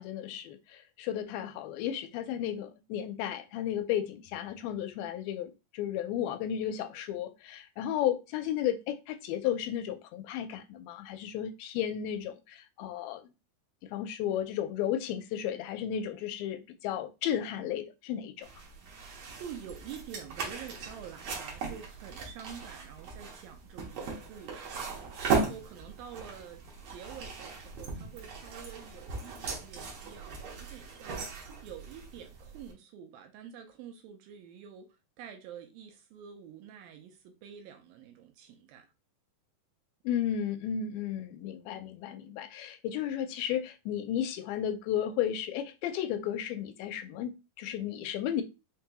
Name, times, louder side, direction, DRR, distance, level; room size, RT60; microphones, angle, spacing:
voice 1, 0.0-13.2 13.9-18.5 40.0-48.4, left 10 dB, 85° left, 2.4 m, -33 dB
sound 1, 18.4-32.7, right 4 dB, 65° right, 1.7 m, -38 dB
voice 2, 19.2-34.9 35.2-38.9, right 8 dB, 80° right, 2.3 m, -48 dB
5.8 x 2.9 x 2.2 m
omnidirectional pair, 4.2 m